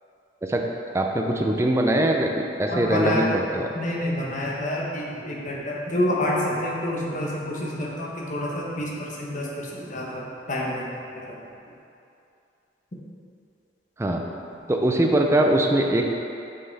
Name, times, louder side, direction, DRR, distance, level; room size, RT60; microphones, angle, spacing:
voice 1, 0.9-3.7 14.0-14.2 14.7-16.0, right 1 dB, 15° right, 1 dB, 0.4 m, -22 dB
voice 2, 2.7-3.3 3.7-11.4, left 1 dB, 40° left, -3 dB, 1.0 m, -28 dB
5.7 x 5.3 x 4.0 m, 2.7 s
head